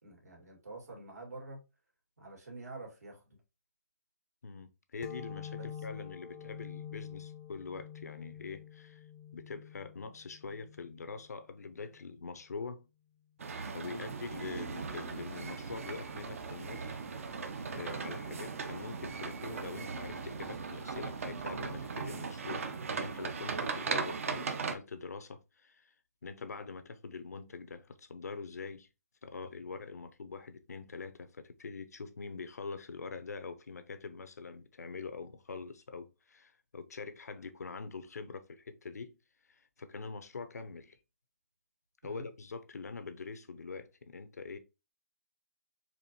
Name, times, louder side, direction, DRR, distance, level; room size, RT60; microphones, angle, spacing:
voice 1, 0.0-1.6 2.2-3.4 5.5-6.0 13.7-14.1 15.3-15.5 42.0-42.3, right 2 dB, 80° right, 2.1 m, -48 dB
voice 2, 4.4-9.0 9.3-12.9 13.7-17.0 17.7-22.7 23.0-25.9 26.2-28.9 29.2-39.2 39.5-41.0 42.0-44.6, left 4 dB, 75° left, 0.6 m, -44 dB
sound 1, 5.0-12.3, left 9 dB, 25° left, 0.4 m, -47 dB
sound 2, 13.4-24.8, right 5 dB, 55° right, 0.6 m, -38 dB
4.2 x 2.6 x 2.8 m
hypercardioid pair, 155°, 9 cm